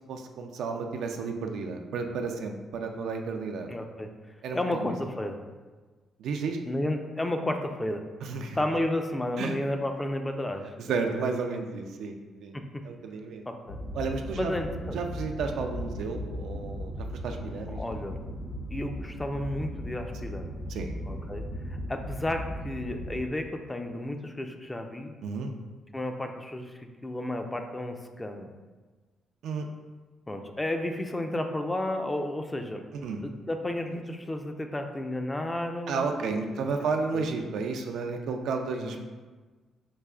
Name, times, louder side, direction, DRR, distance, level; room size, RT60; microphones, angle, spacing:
voice 1, 0.1-3.7 4.4-4.9 6.2-6.6 8.2-8.6 9.4-9.6 10.6-12.6 12.8-13.4 13.9-14.5 14.9-17.8 20.7-20.9 25.2-25.5 29.4-29.7 32.9-33.2 35.9-39.0, right 4 dB, 75° right, 4 dB, 0.3 m, -32 dB
voice 2, 3.7-5.4 6.7-10.9 12.5-12.8 13.5-13.8 14.3-15.0 17.7-18.2 18.7-20.5 21.1-25.1 25.9-28.5 30.3-32.8 33.2-36.6 37.1-37.3 38.7-39.0, left 1 dB, 15° left, 5 dB, 0.3 m, -32 dB
sound 1, 13.7-23.2, equal, 90° left, 1.0 m, -37 dB
4.7 x 2.4 x 2.3 m, 1.3 s
cardioid pair, 90°, 0 cm